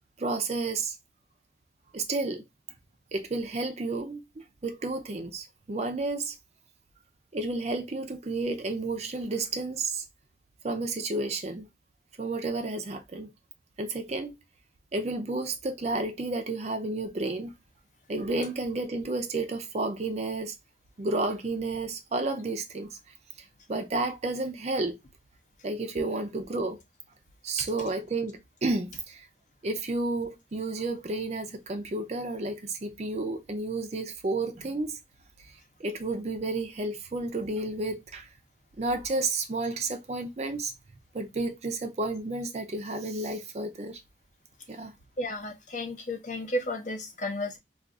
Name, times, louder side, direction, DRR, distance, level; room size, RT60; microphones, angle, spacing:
voice 1, 0.2-0.9 1.9-2.4 3.1-4.2 4.6-6.3 7.3-10.0 10.6-11.7 12.2-13.3 13.8-14.3 14.9-17.5 18.1-20.5 21.0-22.9 23.7-24.9 25.6-26.8 27.4-29.2 29.6-35.0 35.8-38.3 38.8-40.7 41.1-44.0 44.7-44.9, right 2 dB, 35° right, 0.4 m, -31 dB
voice 2, 45.2-47.6, left 1 dB, 40° left, 0.6 m, -33 dB
2.4 x 2.4 x 3.7 m
head